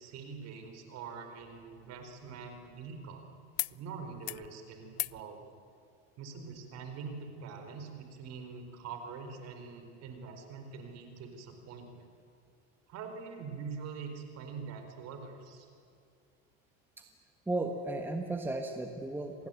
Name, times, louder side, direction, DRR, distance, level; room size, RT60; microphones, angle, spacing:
voice 1, 0.0-3.2 3.7-5.5 6.2-12.1 12.9-15.7, right 5 dB, 45° right, 6 dB, 4.4 m, -44 dB
sound 1, 1.4-3.2 3.5-3.8 4.1-4.5 4.9-5.2 6.5-6.6, left 25 dB, 80° left, 0.5 m, -40 dB
voice 2, 17.5-19.5, right 2 dB, 5° right, 4 dB, 1.4 m, -35 dB
26.5 x 19.0 x 9.2 m, 2.4 s
supercardioid pair, 135°, 35 cm